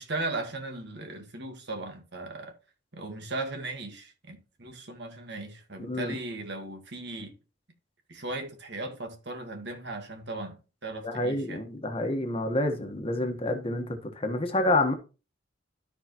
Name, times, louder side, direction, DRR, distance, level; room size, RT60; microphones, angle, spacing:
voice 1, 0.0-2.5 2.9-7.3 8.1-11.6, right 2 dB, 65° right, 1.6 m, -37 dB
voice 2, 5.8-6.1 11.0-14.9, left 1 dB, 30° left, 1.3 m, -28 dB
12.5 x 4.8 x 3.0 m
head